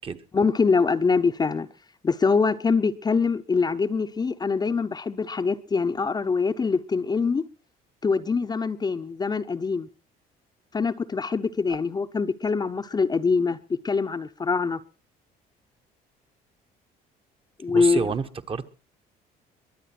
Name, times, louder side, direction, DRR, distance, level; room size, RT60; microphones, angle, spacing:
voice 1, 0.3-1.7 2.0-7.4 8.0-9.9 10.7-13.6 13.8-14.8 17.6-18.1, left 4 dB, 25° left, 0.8 m, -24 dB
voice 2, 17.7-18.7, right 5 dB, 35° right, 1.1 m, -29 dB
23.0 x 8.4 x 5.9 m
cardioid pair, 110°, 17 cm